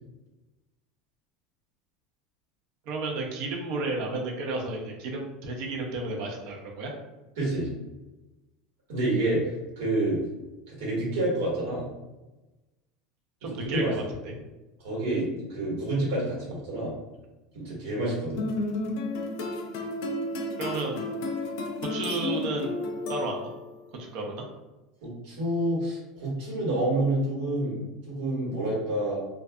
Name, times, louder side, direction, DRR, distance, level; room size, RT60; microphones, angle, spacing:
voice 1, 2.9-6.9 13.4-14.3 20.6-21.1 21.9-22.7 23.1-23.5 24.0-24.5, right 2 dB, 65° right, 0 dB, 0.6 m, -32 dB
voice 2, 7.4-7.7 8.9-9.4 9.8-10.2 10.7-11.8 13.4-13.9 14.8-16.9 17.5-18.4 25.0-27.8 28.1-29.2, right 1 dB, 80° right, -4 dB, 1.3 m, -28 dB
sound 1, 18.4-23.8, left 2 dB, 70° left, 0.5 m, -32 dB
2.5 x 2.3 x 2.2 m, 1.0 s
supercardioid pair, 130°, 0 cm